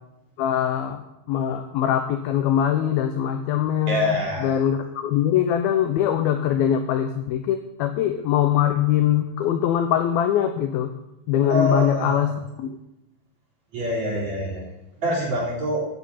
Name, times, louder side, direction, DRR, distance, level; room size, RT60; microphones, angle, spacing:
voice 1, 0.4-1.0 1.3-10.9 11.3-12.8, left 10 dB, 85° left, 8 dB, 2.1 m, -22 dB
voice 2, 3.9-4.5 11.5-12.2 13.7-14.6 15.0-15.8, equal, 40° right, -5 dB, 4.9 m, -25 dB
15.5 x 10.0 x 4.3 m, 0.91 s
omnidirectional pair, 5.2 m